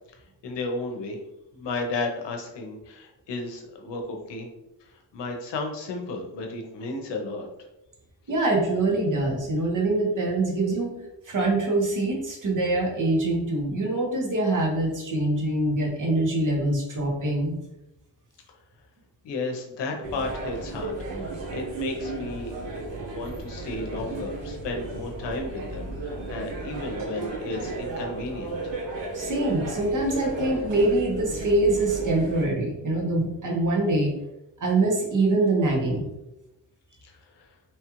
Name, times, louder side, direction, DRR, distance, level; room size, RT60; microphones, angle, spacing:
voice 1, 0.4-1.2 1.5-4.5 4.8-7.5 19.2-22.5 23.1-28.6 37.0-37.5, left 3 dB, 75° left, 2 dB, 0.8 m, -33 dB
voice 2, 8.3-10.9 11.3-17.6 29.1-34.1 34.6-36.0, right 2 dB, 45° right, -1 dB, 1.1 m, -24 dB
sound 1, 20.0-32.5, right 2 dB, 85° right, 0.9 m, -34 dB
3.1 x 2.3 x 2.9 m, 0.92 s
cardioid pair, 85°, 42 cm